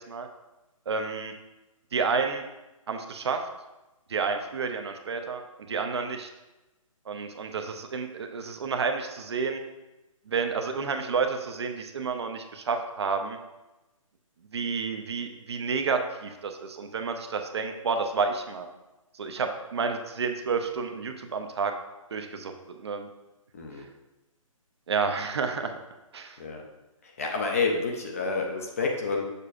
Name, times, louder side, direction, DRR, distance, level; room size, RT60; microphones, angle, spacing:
voice 1, 0.9-1.3 1.9-2.5 2.9-3.4 4.1-6.3 7.1-9.6 10.3-13.4 14.5-18.7 19.1-21.7 22.1-23.1 24.9-25.7 26.1-26.4, right 5 dB, 50° right, 5 dB, 0.6 m, -30 dB
voice 2, 23.5-23.9 26.4-26.6 27.0-29.2, left 4 dB, 25° left, 1 dB, 0.5 m, -29 dB
6.7 x 5.7 x 2.5 m, 1.0 s
hypercardioid pair, 170°, 18 cm